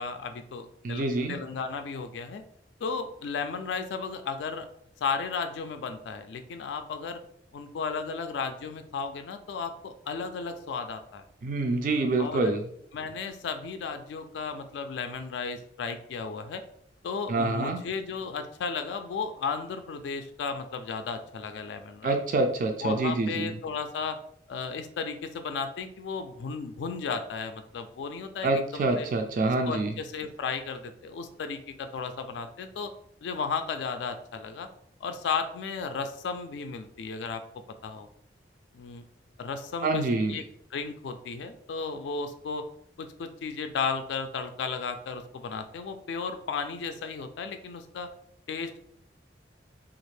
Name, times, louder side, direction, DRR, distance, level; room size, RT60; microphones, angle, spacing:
voice 1, 0.0-2.4 2.8-4.7 5.0-7.2 7.5-11.2 12.2-12.6 12.9-16.6 17.0-22.2 22.8-24.2 24.5-29.1 29.5-32.9 33.2-34.7 35.0-37.4 37.8-38.1 38.7-39.0 39.4-40.0 40.3-40.4 40.7-42.7 43.0-48.1 48.5-48.8, left 5 dB, 75° left, 8 dB, 0.3 m, -34 dB
voice 2, 0.8-1.4 11.4-12.6 17.3-17.8 22.0-23.5 28.4-29.9 39.8-40.3, right 2 dB, 45° right, 4 dB, 0.3 m, -26 dB
3.4 x 2.4 x 3.2 m, 0.69 s
head